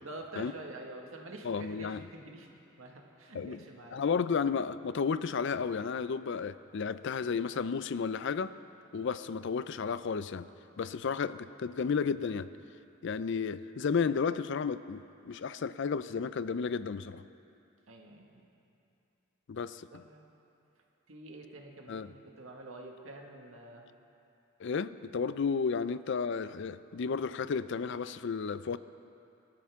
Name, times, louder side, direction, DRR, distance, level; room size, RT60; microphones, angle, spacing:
voice 1, 0.0-2.5 2.7-4.0 8.9-9.1 17.9-18.5 19.9-20.2 21.1-23.9, right 2 dB, 85° right, 1 dB, 1.8 m, -47 dB
voice 2, 1.4-2.1 3.3-3.6 3.9-8.5 8.9-10.5 10.8-12.5 13.0-17.2 19.5-20.0 21.9-22.1 24.6-28.8, left 5 dB, 60° left, 14 dB, 0.4 m, -33 dB
25.5 x 12.5 x 3.6 m, 2.7 s
head